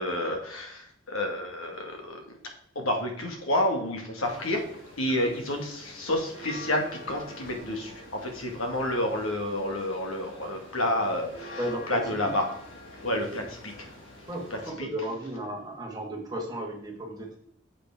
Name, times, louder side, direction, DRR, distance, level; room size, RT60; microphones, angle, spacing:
voice 1, 0.0-2.4 2.8-4.6 5.0-11.6 11.9-12.5 13.0-13.9 14.5-14.9, left 1 dB, 90° left, 3 dB, 2.1 m, -30 dB
sound 1, 4.2-14.7, left 1 dB, 60° left, 4.0 m, -46 dB
voice 2, 11.6-12.0 12.2-12.3 13.1-13.4 14.3-17.4, right 1 dB, 20° right, 0 dB, 1.9 m, -34 dB
9.1 x 7.6 x 3.8 m, 0.64 s
head